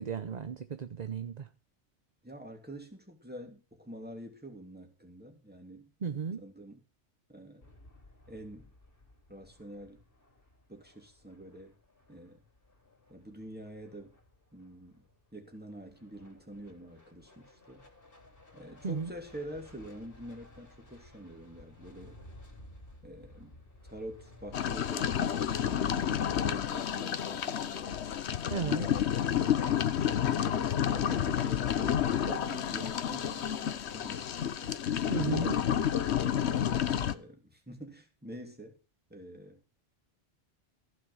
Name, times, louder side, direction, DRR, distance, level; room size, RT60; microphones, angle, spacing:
voice 1, 0.0-1.5 6.0-6.4 18.8-19.1 28.5-28.9 35.1-35.6, right 6 dB, 40° right, 0.8 m, -34 dB
voice 2, 2.2-5.9 6.4-6.8 7.3-7.7 8.3-8.7 9.3-10.0 10.7-11.7 12.1-12.4 13.1-14.2 14.5-15.0 15.3-17.8 18.5-22.2 23.0-23.6 23.8-28.0 28.5-30.0 30.3-34.3 34.6-34.8 35.3-35.7 37.0-38.8 39.1-39.6, right 1 dB, 10° right, 2.8 m, -46 dB
sound 1, 7.6-24.8, left 1 dB, 50° left, 3.6 m, -56 dB
sound 2, 24.5-37.1, left 9 dB, 70° left, 1.1 m, -30 dB
15.0 x 6.5 x 6.2 m
omnidirectional pair, 1.2 m